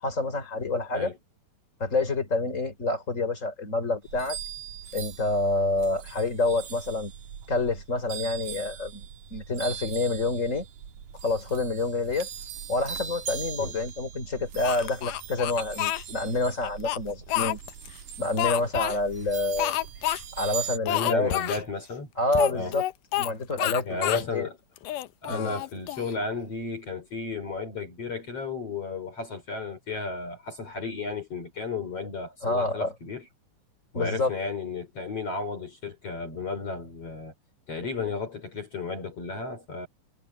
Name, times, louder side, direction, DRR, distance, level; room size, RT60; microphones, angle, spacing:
voice 1, 0.0-1.1 1.8-4.4 4.9-7.1 7.5-10.7 11.2-12.3 12.7-17.6 18.2-19.8 20.4-21.3 22.2-22.8 23.2-24.5 25.3-25.5 32.4-32.9 33.9-34.3, left 2 dB, 25° left, 3.9 m, -28 dB
sound 1, 4.0-20.8, right 8 dB, 80° right, 3.5 m, -40 dB
Speech, 14.6-16.0 16.6-17.9 18.4-19.0 19.6-20.2 20.5-20.6 20.9-21.6 22.3-23.3 23.6-24.3 24.8-26.1, left 15 dB, 85° left, 2.4 m, -29 dB
voice 2, 20.9-22.1 22.5-22.8 23.8-24.6 24.9-33.3 33.9-37.3 37.7-39.9, left 4 dB, 50° left, 5.0 m, -34 dB
omnidirectional pair, 3.6 m